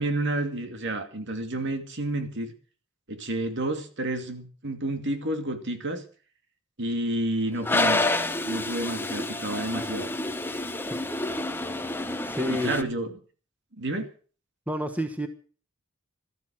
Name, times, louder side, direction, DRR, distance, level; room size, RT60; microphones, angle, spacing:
voice 1, 0.0-2.5 3.1-6.0 6.8-8.1 8.4-10.1 12.5-13.1 13.8-14.1, right 1 dB, 55° right, 7 dB, 2.5 m, -30 dB
Toilet flush, 7.6-12.8, left 2 dB, 10° left, 1.0 m, -28 dB
voice 2, 12.2-12.9 14.7-15.3, equal, 5° right, 8 dB, 1.2 m, -30 dB
13.5 x 13.5 x 6.2 m, 0.39 s
head